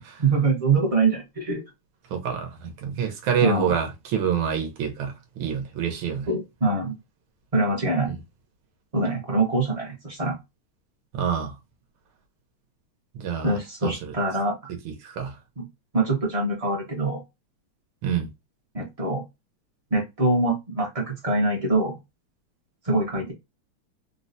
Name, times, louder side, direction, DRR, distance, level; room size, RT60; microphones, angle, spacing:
voice 1, 0.2-1.6 3.4-3.7 6.3-7.0 7.5-8.1 8.9-10.3 13.4-14.6 15.6-15.7 15.9-17.2 18.7-19.2 19.9-22.0 22.8-23.3, right 2 dB, 70° right, 0.3 m, -24 dB
voice 2, 2.1-6.3 8.1-8.2 11.1-11.5 13.1-14.1 14.8-15.3 18.0-18.3, right 8 dB, 85° right, 1.5 m, -27 dB
3.9 x 2.1 x 2.5 m
omnidirectional pair, 2.2 m